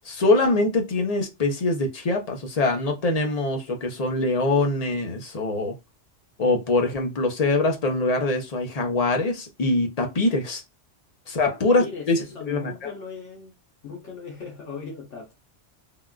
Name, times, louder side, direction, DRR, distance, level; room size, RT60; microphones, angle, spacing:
voice 1, 0.0-5.7 6.4-10.6 11.3-12.9, left 2 dB, 40° left, 0.7 m, -23 dB
voice 2, 11.4-13.5 13.8-15.4, left 5 dB, 80° left, 1.3 m, -38 dB
3.6 x 2.4 x 2.3 m
omnidirectional pair, 1.2 m